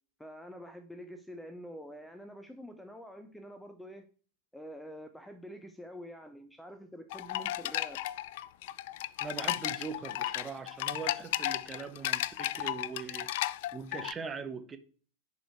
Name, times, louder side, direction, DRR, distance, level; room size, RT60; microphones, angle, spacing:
voice 1, 0.2-4.1 4.5-8.0, equal, 5° left, 0.7 m, -47 dB
sound 1, 7.1-14.1, left 14 dB, 50° left, 0.4 m, -34 dB
voice 2, 9.2-14.8, right 5 dB, 15° right, 1.1 m, -41 dB
10.0 x 5.1 x 4.7 m
figure-of-eight pair, 90°, 0 cm